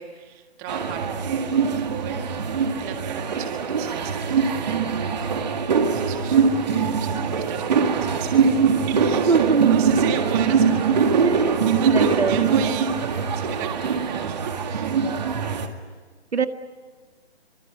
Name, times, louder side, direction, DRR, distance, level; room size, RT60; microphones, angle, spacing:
voice 1, 0.0-5.4 5.9-6.4 6.9-8.5 8.9-12.9 13.3-14.9, right 8 dB, 15° right, 5 dB, 1.7 m, -36 dB
sound 1, 0.7-15.7, right 6 dB, 40° right, 2.2 m, -22 dB
voice 2, 9.3-9.8 11.2-12.7 16.3-16.5, right 5 dB, 75° right, 8 dB, 1.9 m, -23 dB
25.0 x 23.5 x 9.9 m, 1.4 s
figure-of-eight pair, 155°, 32 cm